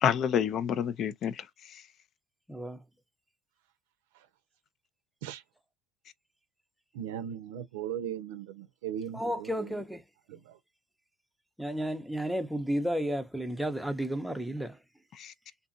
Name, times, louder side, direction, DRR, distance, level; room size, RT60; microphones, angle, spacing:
voice 1, 0.0-1.8 15.1-15.3, left 8 dB, 50° left, 0.3 m, -29 dB
voice 2, 2.5-2.8 9.1-10.0 11.6-14.8, equal, ahead, 0.6 m, -32 dB
voice 3, 6.9-9.8 10.3-10.6, right 9 dB, 80° right, 0.5 m, -38 dB
2.6 x 2.5 x 2.5 m
hypercardioid pair, 85°, 0 cm